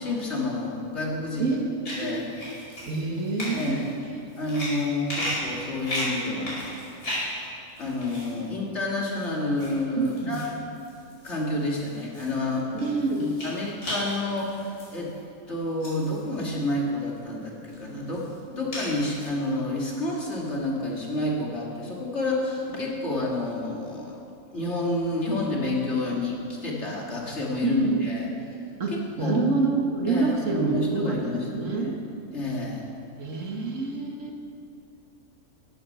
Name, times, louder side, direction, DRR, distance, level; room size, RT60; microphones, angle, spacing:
voice 1, 0.0-1.5 2.0-2.3 3.5-3.9 4.4-6.6 7.8-10.6 11.2-12.7 13.4-15.1 15.5-24.2 24.5-28.3 28.9-29.4 30.1-31.9 32.3-32.9, left 2 dB, 50° left, -3 dB, 2.7 m, -29 dB
voice 2, 1.4-2.2 2.9-4.2 10.0-10.4 12.7-13.3 27.6-27.9 28.8-32.0 33.2-34.4, right 3 dB, 60° right, 1 dB, 1.9 m, -27 dB
sound 1, 1.8-7.4 7.8-8.4 8.9-9.7 10.0-15.2 15.8-16.6 17.2-17.3 17.7-19.3, left 1 dB, 90° left, 5.3 m, -35 dB
15.5 x 10.0 x 6.8 m, 2.6 s
omnidirectional pair, 1.6 m